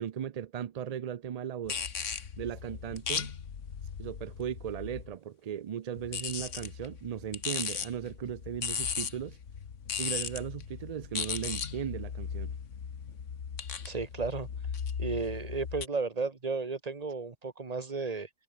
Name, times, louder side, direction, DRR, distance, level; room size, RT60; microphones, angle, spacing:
voice 1, 0.0-1.8 2.4-3.3 4.0-9.4 10.0-12.5, right 9 dB, 65° right, 0.3 m, -37 dB
sound 1, 1.7-5.2 6.0-15.9, left 7 dB, 75° left, 1.7 m, -37 dB
voice 2, 13.8-14.5 15.0-18.3, right 4 dB, 30° right, 1.4 m, -33 dB
omnidirectional pair, 1.3 m